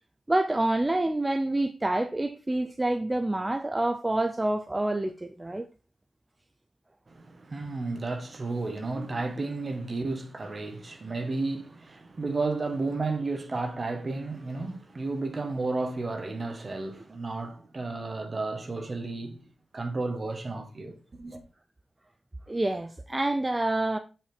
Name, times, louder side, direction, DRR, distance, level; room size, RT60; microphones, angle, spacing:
voice 1, 0.3-5.6 22.5-24.0, right 1 dB, 15° right, 0.5 m, -27 dB
voice 2, 7.1-19.4 19.7-21.4, right 3 dB, 35° right, 1.4 m, -32 dB
7.5 x 5.8 x 4.3 m
wide cardioid pair, 130°, 0 cm